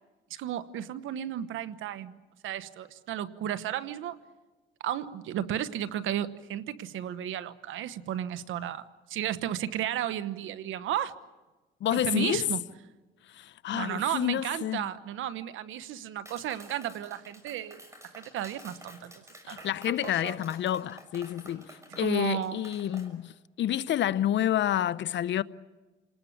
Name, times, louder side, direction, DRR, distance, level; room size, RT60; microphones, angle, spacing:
voice 1, 0.3-2.2 2.4-4.2 4.8-11.1 11.9-12.6 13.7-19.7 20.0-20.4 21.9-22.6, right 11 dB, 85° right, 1.1 m, -34 dB
voice 2, 11.8-12.5 13.4-14.8 19.4-21.6 22.0-23.3 23.6-25.4, left 11 dB, 65° left, 0.7 m, -29 dB
Clapping, 16.3-23.1, equal, 15° right, 6.2 m, -50 dB
28.5 x 19.5 x 8.6 m
cardioid pair, 90°, 20 cm